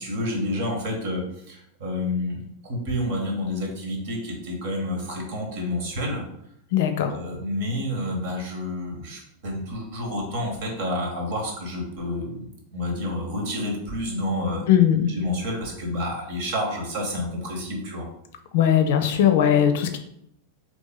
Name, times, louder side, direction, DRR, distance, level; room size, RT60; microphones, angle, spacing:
voice 1, 0.0-6.2 7.0-14.7 15.0-18.1, left 1 dB, 50° right, 1 dB, 1.3 m, -29 dB
voice 2, 6.7-7.1 14.7-15.1 18.5-20.0, left 9 dB, 55° left, 6 dB, 0.5 m, -19 dB
4.1 x 3.0 x 3.6 m, 0.74 s
figure-of-eight pair, 90°, 0 cm